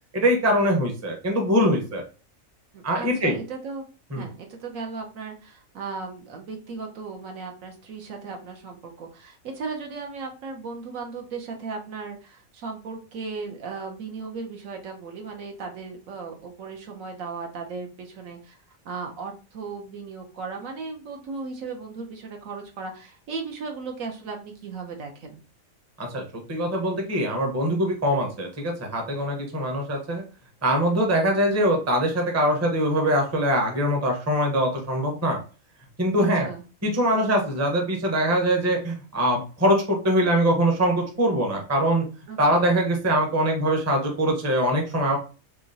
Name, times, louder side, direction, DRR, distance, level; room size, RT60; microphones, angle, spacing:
voice 1, 0.1-2.0 2.8-3.3 4.1-4.2 26.0-26.2 26.5-30.2 30.6-35.4 36.0-36.5 36.8-42.0 42.4-45.2, equal, 15° right, 2 dB, 0.6 m, -23 dB
voice 2, 2.7-3.8 4.2-18.6 18.8-25.4 36.2-36.6 42.3-42.6, right 4 dB, 75° right, 2 dB, 1.2 m, -36 dB
3.7 x 2.9 x 2.6 m, 0.34 s
omnidirectional pair, 1.4 m